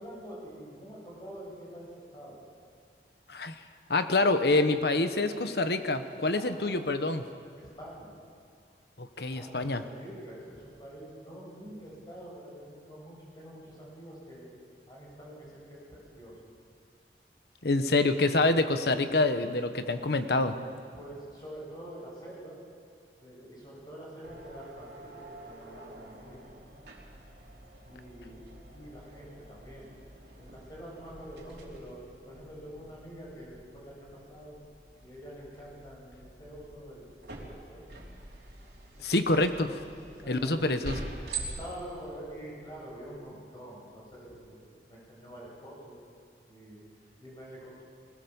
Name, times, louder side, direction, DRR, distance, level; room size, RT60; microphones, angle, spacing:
voice 1, 0.0-2.4 6.3-6.8 7.5-8.2 9.4-14.5 14.9-16.4 20.9-22.6 23.2-26.5 27.8-29.9 30.3-32.0 32.2-34.6 35.0-37.8 39.0-39.1 40.0-40.6 41.3-46.0 46.5-47.8, equal, 20° left, -5 dB, 7.7 m, -46 dB
voice 2, 3.9-7.2 9.0-9.8 17.6-20.5 39.0-39.7 40.3-41.0, left 2 dB, 65° left, 9 dB, 1.1 m, -26 dB
sound 1, 24.2-43.1, right 2 dB, 65° right, 3.6 m, -46 dB
20.0 x 19.0 x 7.1 m, 2.2 s
head